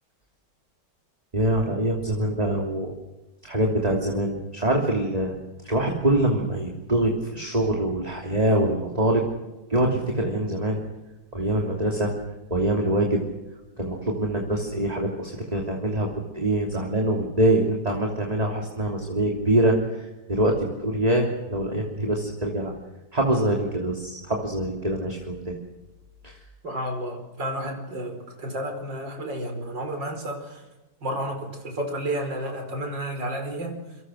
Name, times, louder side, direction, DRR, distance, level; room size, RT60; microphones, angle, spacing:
voice 1, 1.3-2.9 3.4-5.4 5.6-9.2 9.7-10.8 11.3-12.1 12.5-13.2 13.8-16.1 16.3-22.7 23.1-25.6 26.2-26.4, right 1 dB, 20° right, 1 dB, 3.1 m, -24 dB
voice 2, 26.6-30.6 31.0-33.8, right 1 dB, 85° right, 5 dB, 5.5 m, -31 dB
28.0 x 25.5 x 6.5 m, 1.1 s
omnidirectional pair, 1.9 m